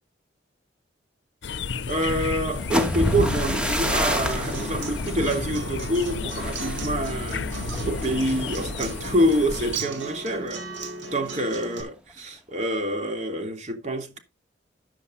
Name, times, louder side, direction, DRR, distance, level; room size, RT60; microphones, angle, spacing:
sound 1, 1.4-9.8, left 4 dB, 70° left, 0.7 m, -31 dB
voice 1, 1.9-7.5 7.8-10.7 11.1-14.2, equal, 35° right, 2.9 m, -26 dB
sound 2, 2.5-10.4 10.8-11.1 11.4-11.9, equal, 5° right, 2.2 m, -31 dB
Acoustic guitar, 3.8-11.8, right 3 dB, 85° right, 4.8 m, -37 dB
14.0 x 10.5 x 2.7 m
head